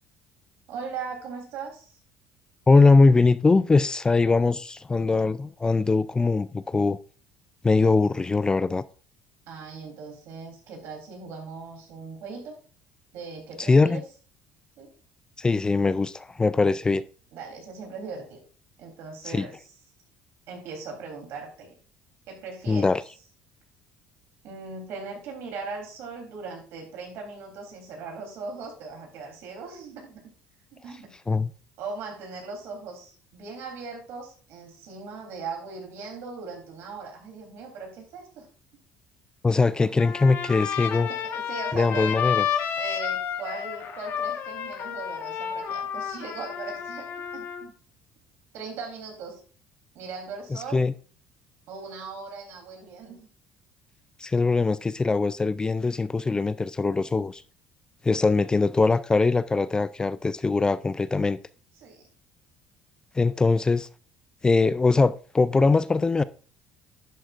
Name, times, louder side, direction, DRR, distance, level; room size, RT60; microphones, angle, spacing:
voice 1, 0.7-2.0 9.5-12.6 13.1-14.0 14.8-14.9 17.3-18.4 18.8-19.7 20.5-21.8 22.3-22.9 24.4-30.3 30.7-31.1 31.8-38.5 41.1-42.1 42.8-47.1 47.3-47.7 48.5-49.4 49.9-50.8 51.7-53.3 61.7-62.1, right 4 dB, 70° right, 3.4 m, -39 dB
voice 2, 2.7-7.0 7.6-8.8 13.7-14.0 15.4-17.0 19.3-19.5 22.7-23.0 31.3-31.5 39.4-41.1 41.7-42.4 50.7-50.9 54.2-57.4 58.0-61.4 63.2-63.9 64.4-66.2, left 3 dB, 15° left, 0.3 m, -21 dB
Trumpet, 40.0-47.6, left 8 dB, 60° left, 1.4 m, -31 dB
11.0 x 7.8 x 2.5 m
cardioid pair, 110°, 4 cm